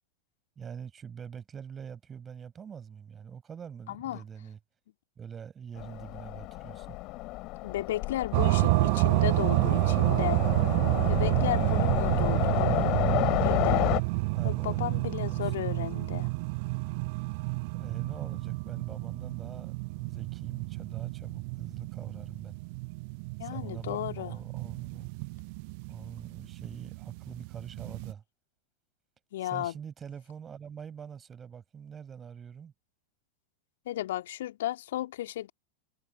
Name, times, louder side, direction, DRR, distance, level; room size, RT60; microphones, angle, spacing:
voice 1, 0.6-4.6 5.2-7.0 12.0-12.8 14.3-15.8 17.7-22.6 23.4-25.1 25.9-28.2 29.4-32.7, right 7 dB, 20° right, 5.3 m, -44 dB
voice 2, 3.9-4.2 7.6-10.4 11.1-12.8 13.4-13.8 14.4-16.3 23.4-24.3 29.3-29.7 33.9-35.5, left 13 dB, 55° left, 2.3 m, -34 dB
Train, 5.8-14.0, left 21 dB, 40° left, 3.1 m, -31 dB
sound 1, 8.3-28.1, right 29 dB, 45° right, 0.4 m, -29 dB
figure-of-eight pair, 90°, 0 cm